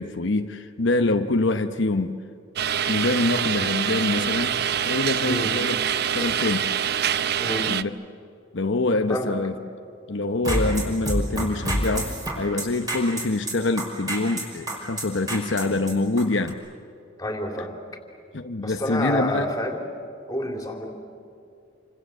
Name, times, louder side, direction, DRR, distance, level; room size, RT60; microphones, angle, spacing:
voice 1, 0.0-2.2 2.9-6.7 7.7-7.9 8.5-9.5 10.1-16.6 18.3-19.5, left 2 dB, 70° left, 1.0 m, -25 dB
sound 1, 2.6-7.8, right 8 dB, 55° right, 0.7 m, -25 dB
voice 2, 5.2-5.6 7.4-7.7 9.1-9.4 17.2-17.8 18.6-19.8 20.3-20.9, left 1 dB, 20° left, 3.5 m, -28 dB
sound 2, 10.3-16.5, right 1 dB, 20° right, 5.6 m, -27 dB
28.5 x 26.0 x 7.9 m
head